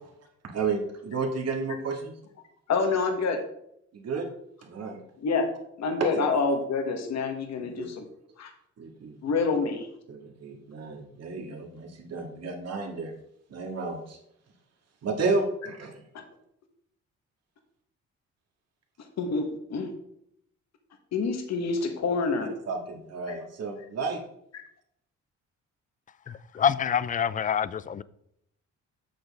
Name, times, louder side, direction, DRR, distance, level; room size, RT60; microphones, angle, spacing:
voice 1, 0.5-2.1 3.9-4.3 4.6-5.0 6.0-6.3 7.6-7.9 8.8-9.4 10.1-13.1 13.5-14.2 15.0-16.0 22.7-24.2, right 4 dB, 55° right, 1.9 m, -32 dB
voice 2, 2.7-3.4 5.2-5.5 5.8-8.0 8.4-8.5 9.2-9.9 19.2-19.9 21.1-22.5, left 4 dB, 60° left, 1.4 m, -27 dB
voice 3, 26.6-28.0, left 8 dB, 25° left, 0.4 m, -26 dB
7.9 x 6.4 x 3.6 m
cardioid pair, 90°, 30 cm